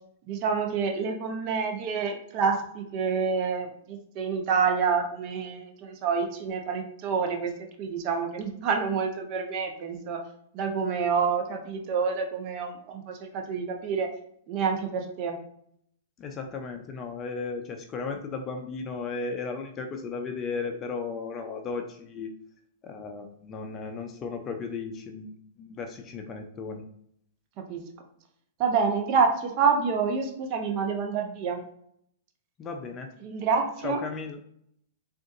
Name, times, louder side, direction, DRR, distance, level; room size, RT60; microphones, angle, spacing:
voice 1, 0.3-7.5 7.8-10.2 10.5-14.1 14.5-15.4 27.6-27.8 28.6-31.6 33.2-34.0, right 5 dB, 45° right, 3 dB, 0.8 m, -27 dB
voice 2, 16.2-22.3 22.8-25.3 25.6-26.8 32.6-33.1 33.8-34.4, left 4 dB, 25° left, 5 dB, 0.5 m, -35 dB
3.7 x 2.5 x 2.6 m, 0.69 s
hypercardioid pair, 120°, 0 cm